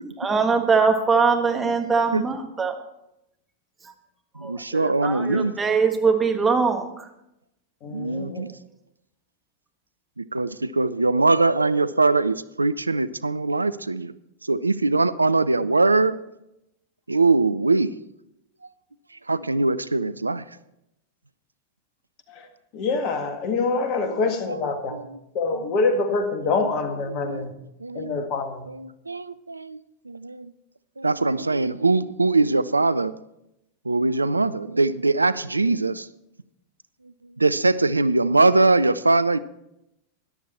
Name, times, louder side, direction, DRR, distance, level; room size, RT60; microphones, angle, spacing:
voice 1, 0.0-2.7 4.4-7.1, right 5 dB, 15° right, 4 dB, 1.5 m, -22 dB
voice 2, 4.4-5.5 7.9-8.5 10.2-14.1 14.5-16.2 17.1-17.9 19.3-20.4 24.0-24.2 24.5-25.2 25.5-25.8 26.6-26.7 27.1-27.5 27.8-28.2 28.7-29.8 30.1-30.5 31.0-33.1 33.9-36.1 37.4-39.4, right 3 dB, 80° right, 16 dB, 0.4 m, -22 dB
voice 3, 7.8-8.5 22.7-25.0 25.3-27.5 27.9-28.6, left 3 dB, 40° left, 7 dB, 1.7 m, -25 dB
13.5 x 11.0 x 4.3 m, 0.85 s
figure-of-eight pair, 90°, 0 cm